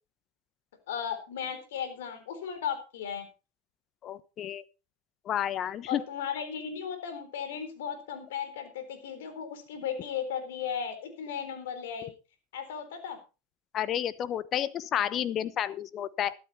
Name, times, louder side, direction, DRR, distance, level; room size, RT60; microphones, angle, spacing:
voice 1, 0.9-3.3 5.9-12.1 12.5-13.2, left 7 dB, 75° left, 9 dB, 3.9 m, -36 dB
voice 2, 4.0-4.6 5.2-6.0 13.7-16.3, left 10 dB, 40° left, 18 dB, 1.0 m, -31 dB
13.0 x 12.5 x 4.2 m, 0.30 s
hypercardioid pair, 90°, 0 cm